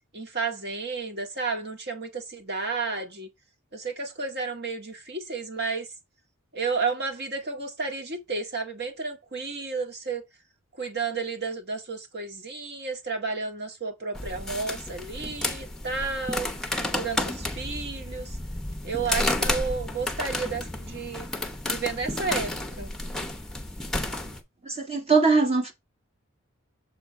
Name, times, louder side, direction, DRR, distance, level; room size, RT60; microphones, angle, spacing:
voice 1, 0.1-3.3 3.7-5.9 6.5-10.2 10.8-16.5 17.0-18.4 18.8-21.3 21.7-22.5 22.8-22.9, right 4 dB, 50° right, 1.8 m, -32 dB
sound 1, 14.1-24.4, left 1 dB, 5° left, 0.8 m, -31 dB
voice 2, 24.6-25.7, right 4 dB, 30° right, 1.7 m, -21 dB
7.3 x 3.8 x 4.6 m
head